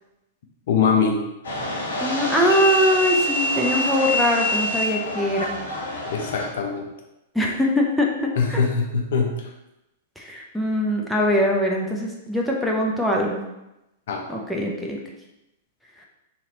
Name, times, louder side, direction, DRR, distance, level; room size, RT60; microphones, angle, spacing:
voice 1, 0.7-1.2 6.1-6.9 8.4-9.5 14.1-14.3, left 5 dB, 65° left, 2 dB, 0.6 m, -22 dB
sound 1, 1.4-6.5, left 1 dB, 85° left, 1.2 m, -26 dB
voice 2, 2.0-5.5 7.3-8.6 10.2-13.4 14.3-15.0, equal, ahead, -2 dB, 0.6 m, -22 dB
2.9 x 2.9 x 3.8 m, 0.93 s
hypercardioid pair, 115°, 0 cm